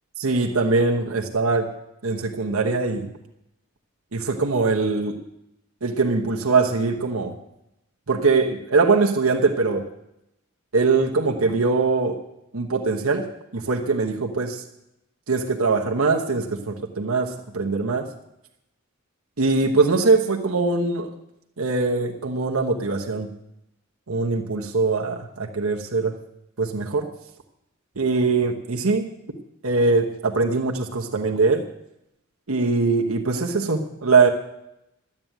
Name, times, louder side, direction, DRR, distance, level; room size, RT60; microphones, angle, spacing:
voice 1, 0.2-1.7 2.0-3.1 4.1-5.2 5.8-7.3 8.1-9.9 10.7-12.2 12.5-14.6 15.3-18.1 19.4-21.1 21.6-23.3 24.1-26.1 26.6-27.1 28.0-29.1 29.6-31.6 32.5-34.3, right 4 dB, 80° right, 2 dB, 1.2 m, -22 dB
12.5 x 8.8 x 9.0 m, 0.85 s
head